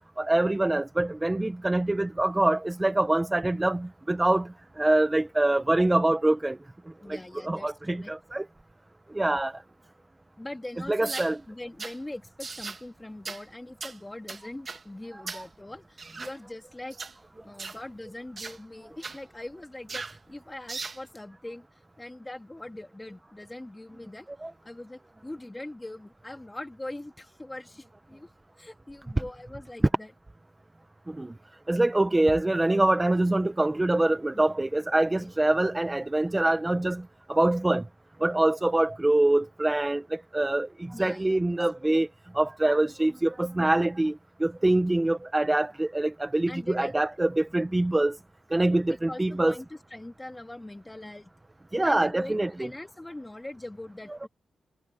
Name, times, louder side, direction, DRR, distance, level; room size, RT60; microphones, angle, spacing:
voice 1, 0.2-6.6 7.5-8.4 9.1-9.6 10.9-11.4 15.3-15.4 24.4-24.5 31.1-31.3 31.7-37.9 38.2-42.1 42.3-48.2 48.5-49.5 51.7-52.7, right 2 dB, 15° right, 0.5 m, -25 dB
voice 2, 7.0-8.1 10.4-17.0 17.4-24.3 24.6-28.3 28.6-30.1 34.3-34.5 35.1-35.3 40.9-42.0 46.5-46.9 47.5-47.8 48.9-51.3 51.8-54.3, left 1 dB, 10° left, 2.4 m, -42 dB
sound 1, 11.0-11.3 11.8-12.0 12.4-12.8 13.2-13.4 13.8-14.0 14.3-14.8 15.3-15.5 16.0-16.3 16.9-17.1 17.6-17.8 18.4-18.6 19.0-19.2 19.9-20.2 20.7-21.0, right 4 dB, 35° right, 1.1 m, -38 dB
wide cardioid pair, 145°, 0 cm